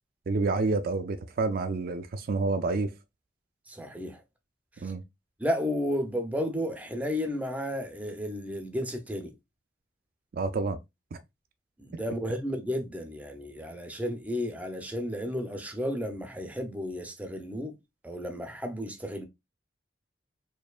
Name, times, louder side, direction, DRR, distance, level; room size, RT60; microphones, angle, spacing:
voice 1, 0.3-2.9 4.8-5.0 10.3-10.8 11.1-11.2, right 3 dB, 55° right, 0.4 m, -28 dB
voice 2, 3.7-4.2 5.4-9.3 11.8-17.8 18.0-19.3, equal, 10° right, 0.6 m, -33 dB
4.4 x 2.8 x 2.3 m
head